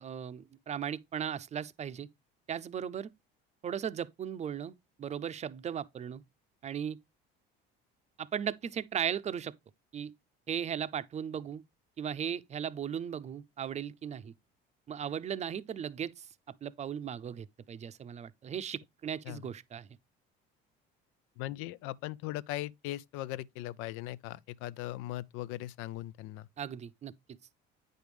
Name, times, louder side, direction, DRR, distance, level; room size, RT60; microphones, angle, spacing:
voice 1, 0.0-2.1 2.5-3.1 3.6-6.2 6.6-7.0 8.2-9.5 9.9-10.1 10.5-11.6 12.0-14.3 14.9-16.3 16.6-19.9 26.6-27.1, right 8 dB, 30° right, 0.5 m, -37 dB
voice 2, 21.4-26.5, left 15 dB, 80° left, 0.5 m, -39 dB
9.1 x 5.2 x 3.1 m
cardioid pair, 120°, 21 cm